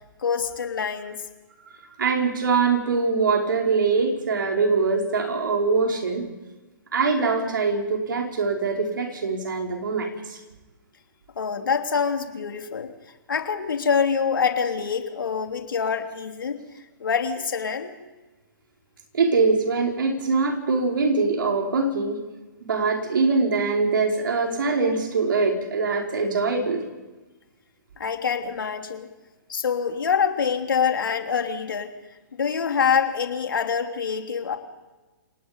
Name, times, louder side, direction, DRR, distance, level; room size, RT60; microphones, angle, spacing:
voice 1, 0.2-1.2 11.4-12.9 13.3-16.6 17.0-17.9 28.0-29.1 29.5-31.9 32.4-34.6, left 6 dB, 75° left, 5 dB, 3.1 m, -25 dB
voice 2, 2.0-6.2 6.9-10.4 19.1-22.2 22.7-26.8, right 4 dB, 75° right, 1 dB, 5.3 m, -23 dB
28.5 x 19.0 x 5.4 m, 1.2 s
hypercardioid pair, 130°, 11 cm